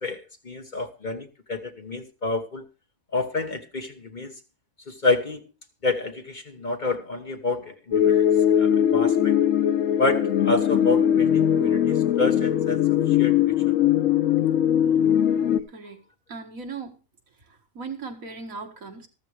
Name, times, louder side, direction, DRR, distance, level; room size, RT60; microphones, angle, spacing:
voice 1, 0.0-2.6 3.1-4.3 4.9-5.4 5.8-8.3 8.5-9.4 10.0-12.8 13.2-13.3, left 3 dB, 35° left, 6 dB, 1.2 m, -28 dB
sound 1, 7.9-15.6, left 10 dB, 70° left, 1.2 m, -20 dB
voice 2, 15.7-16.0 16.3-17.0 17.5-19.1, right 4 dB, 75° right, 4 dB, 2.2 m, -38 dB
13.5 x 13.5 x 3.3 m, 0.31 s
omnidirectional pair, 1.4 m